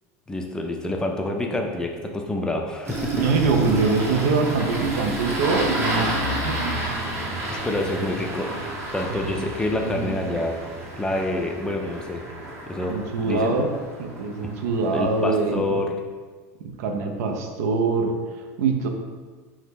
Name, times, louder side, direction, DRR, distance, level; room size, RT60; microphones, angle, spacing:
voice 1, 0.3-3.3 7.6-8.5 8.9-10.6 11.0-12.2 12.7-13.0 13.2-13.6 14.4-14.5 14.9-15.9, left 2 dB, 10° left, 2 dB, 0.3 m, -27 dB
Engine starting, 2.8-15.3, right 1 dB, 30° right, 0.7 m, -31 dB
voice 2, 3.1-6.1 6.4-6.8 7.2-7.3 9.1-9.5 9.8-10.4 12.9-13.7 14.0-15.8 16.6-18.9, right 4 dB, 80° right, 4 dB, 0.4 m, -24 dB
2.7 x 2.1 x 3.3 m, 1.4 s
supercardioid pair, 120°, 8 cm